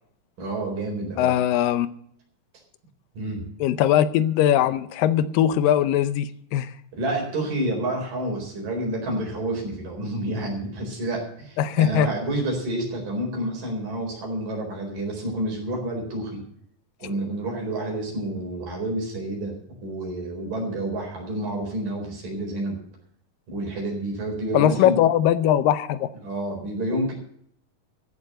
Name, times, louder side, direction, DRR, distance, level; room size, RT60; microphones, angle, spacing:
voice 1, 0.4-1.3 3.1-3.5 6.9-16.4 17.0-22.8 23.5-25.0 26.2-27.1, right 1 dB, 70° right, 0 dB, 5.9 m, -29 dB
voice 2, 1.2-1.9 3.6-6.7 11.6-12.1 24.5-26.1, left 11 dB, 80° left, 14 dB, 2.4 m, -20 dB
14.5 x 7.2 x 7.8 m, 0.66 s
omnidirectional pair, 4.0 m